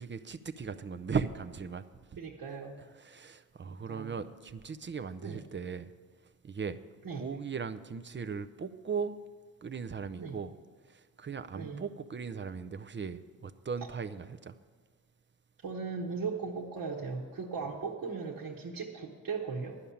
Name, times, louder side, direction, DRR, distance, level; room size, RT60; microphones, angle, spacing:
voice 1, 0.0-1.8 3.0-5.9 6.4-6.8 7.1-9.2 9.6-10.5 10.9-14.5, right 6 dB, 30° right, 11 dB, 0.6 m, -38 dB
voice 2, 2.2-2.8 3.6-4.1 5.2-5.4 7.0-7.3 10.2-10.4 11.5-11.8 15.6-19.8, right 5 dB, 60° right, -3 dB, 1.3 m, -38 dB
11.0 x 5.7 x 8.6 m, 1.5 s
supercardioid pair, 55°, 38 cm